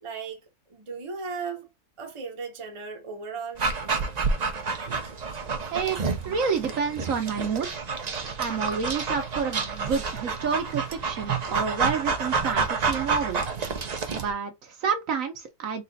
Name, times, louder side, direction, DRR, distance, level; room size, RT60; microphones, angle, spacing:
voice 1, 0.0-1.7 2.0-3.7, right 5 dB, 25° right, 0.8 m, -36 dB
Dog, 3.6-14.3, right 4 dB, 50° right, 0.5 m, -29 dB
voice 2, 5.7-7.8 8.4-13.4 14.1-15.8, right 6 dB, 65° right, 1.1 m, -29 dB
4.1 x 2.4 x 3.9 m
omnidirectional pair, 1.6 m